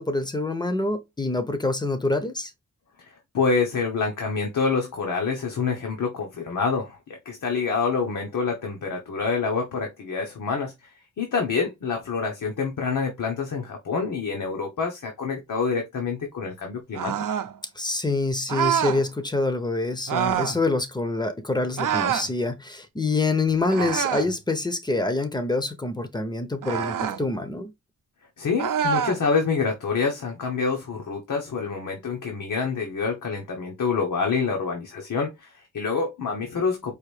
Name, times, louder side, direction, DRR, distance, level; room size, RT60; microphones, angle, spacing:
voice 1, 0.0-2.5 17.8-27.7, left 2 dB, 15° left, 0.5 m, -26 dB
voice 2, 3.0-17.1 28.4-36.9, left 5 dB, 70° left, 0.9 m, -27 dB
sound 1, 16.9-17.5 18.5-19.0 20.1-20.6 21.8-22.3 23.7-24.3 26.6-27.2 28.6-29.2, right 8 dB, 80° right, 0.6 m, -26 dB
4.8 x 2.6 x 3.2 m
wide cardioid pair, 170°, 31 cm